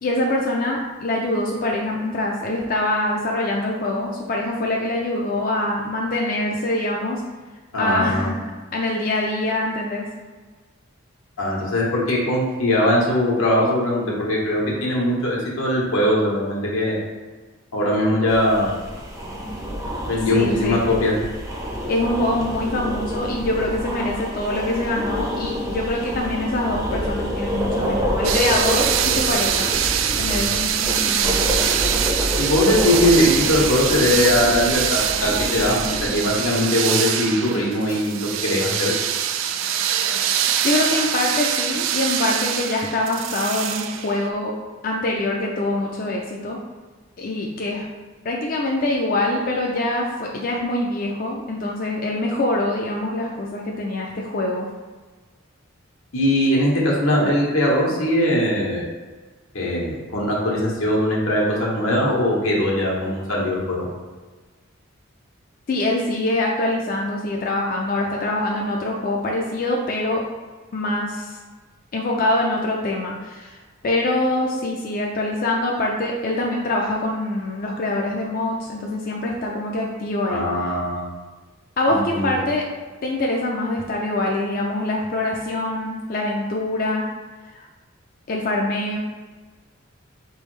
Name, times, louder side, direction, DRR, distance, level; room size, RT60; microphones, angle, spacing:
voice 1, 0.0-7.2 7.8-10.1 20.3-20.8 21.9-29.7 30.2-31.5 40.6-44.5 44.8-46.6 47.2-47.9 48.2-54.7 65.7-70.2 70.7-71.4 71.9-73.6 73.8-80.4 81.8-82.6 83.0-87.0 87.5-87.7 88.3-89.0, left 1 dB, 45° left, -1 dB, 0.4 m, -24 dB
voice 2, 7.7-8.3 11.4-16.9 17.7-18.7 20.1-21.1 30.0-30.4 32.4-38.9 56.1-58.9 59.5-63.9 80.3-81.1 81.9-82.3, left 1 dB, 85° left, -4 dB, 1.2 m, -21 dB
sound 1, 18.3-36.3, equal, 15° right, 0.5 m, -28 dB
sound 2, 28.2-44.3, right 9 dB, 65° right, 0.3 m, -24 dB
4.4 x 3.4 x 3.2 m, 1.3 s
head